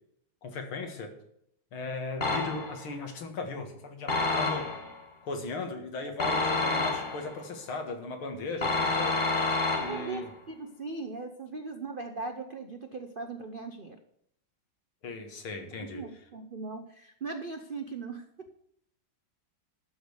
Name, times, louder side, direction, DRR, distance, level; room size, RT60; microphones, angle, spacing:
voice 1, 0.4-1.1 1.7-4.7 5.2-9.2 9.7-10.3 15.0-16.0, left 3 dB, 80° left, 4 dB, 2.5 m, -37 dB
sound 1, 2.2-2.9 4.1-5.0 6.2-7.4 8.6-10.3, left 3 dB, 25° left, 1.3 m, -29 dB
voice 2, 9.9-10.2 10.5-14.0 15.8-18.6, right 3 dB, 75° right, 6 dB, 0.4 m, -39 dB
12.5 x 5.2 x 7.9 m, 0.73 s
omnidirectional pair, 2.3 m